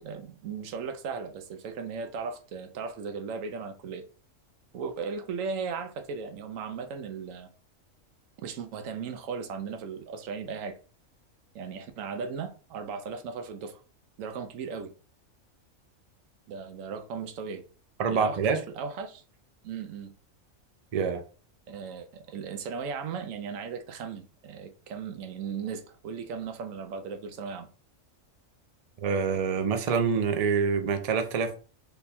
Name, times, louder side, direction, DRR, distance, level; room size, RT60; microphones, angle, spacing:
voice 1, 0.0-4.0 4.7-7.5 8.4-10.8 11.5-13.8 14.2-14.9 16.5-17.6 18.1-19.2 19.6-20.1 21.7-27.7, right 5 dB, 85° right, 1.0 m, -37 dB
voice 2, 18.0-18.6 20.9-21.2 29.0-31.5, right 5 dB, 55° right, 0.4 m, -26 dB
3.4 x 2.2 x 4.0 m
omnidirectional pair, 1.3 m